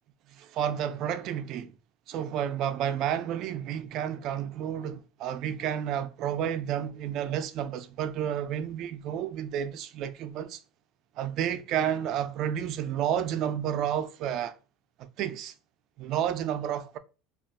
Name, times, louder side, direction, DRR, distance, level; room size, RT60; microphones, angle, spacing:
voice 1, 0.3-1.7 2.1-10.6 11.2-14.5 15.0-15.5 16.0-17.0, right 10 dB, 55° right, 0.3 m, -31 dB
2.3 x 2.2 x 3.5 m
supercardioid pair, 130°, 0 cm